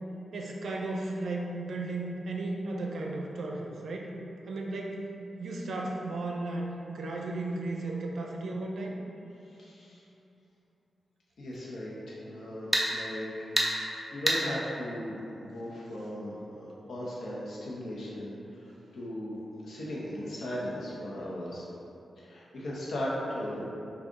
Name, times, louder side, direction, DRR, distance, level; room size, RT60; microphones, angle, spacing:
voice 1, 0.3-4.1 4.5-5.0 5.4-9.0, right 2 dB, 75° right, 0 dB, 0.5 m, -35 dB
voice 2, 9.4-10.0 11.4-13.3 13.7-21.7 22.2-23.7, equal, 80° left, -6 dB, 0.8 m, -37 dB
sound 1, 11.5-11.6 12.7-12.9 13.6-13.7 14.3-14.4, right 1 dB, 10° right, 0.7 m, -25 dB
5.2 x 2.4 x 3.6 m, 2.9 s
cardioid pair, 90°, 0 cm